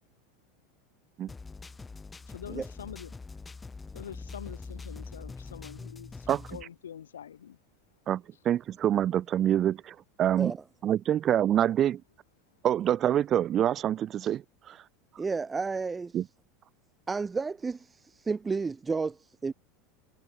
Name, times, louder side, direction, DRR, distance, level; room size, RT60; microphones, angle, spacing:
sound 1, 1.3-6.6, left 4 dB, 15° left, 2.9 m, -44 dB
voice 1, 2.3-3.1 3.9-7.6, left 9 dB, 75° left, 1.6 m, -45 dB
voice 2, 8.1-10.5 10.8-12.0 12.6-14.8 16.1-16.2, right 11 dB, 40° right, 0.4 m, -26 dB
voice 3, 15.2-16.2 17.1-19.5, right 4 dB, 20° right, 1.0 m, -32 dB
figure-of-eight pair, 80°, 0 cm